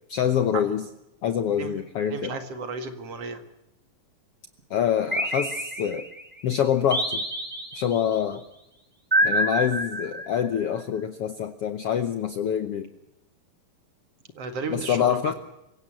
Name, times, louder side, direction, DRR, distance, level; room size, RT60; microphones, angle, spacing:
voice 1, 0.1-0.8 1.2-2.3 4.7-6.0 6.4-7.2 7.7-8.4 9.2-12.9 14.7-15.3, left 9 dB, 90° left, 9 dB, 1.3 m, -25 dB
voice 2, 2.1-3.4 14.4-15.3, right 4 dB, 50° right, 8 dB, 2.5 m, -33 dB
sound 1, 5.1-6.2 6.9-8.0 9.1-10.6, right 1 dB, 5° right, 2.7 m, -27 dB
25.5 x 16.5 x 7.6 m, 0.89 s
omnidirectional pair, 4.1 m